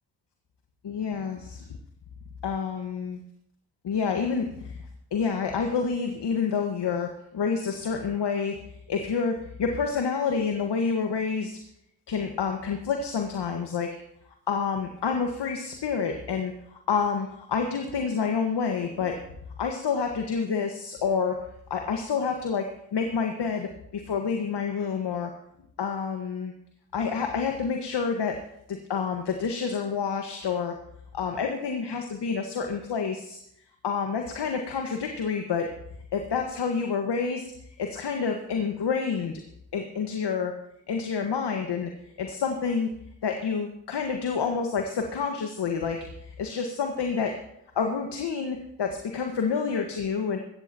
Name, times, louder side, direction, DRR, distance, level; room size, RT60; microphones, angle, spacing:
voice 1, 0.8-1.6 2.4-3.2 3.8-4.8 5.1-8.6 8.9-11.6 12.1-14.0 14.5-19.2 19.6-21.4 21.7-25.3 25.8-26.5 26.9-28.4 28.7-30.8 31.1-33.4 33.8-35.7 36.1-37.4 37.8-39.4 39.7-40.5 40.9-41.9 42.2-42.9 43.2-47.4 47.7-50.4, left 5 dB, 55° left, 3 dB, 1.7 m, -28 dB
16.5 x 13.5 x 3.0 m, 0.74 s
hypercardioid pair, 40°, 48 cm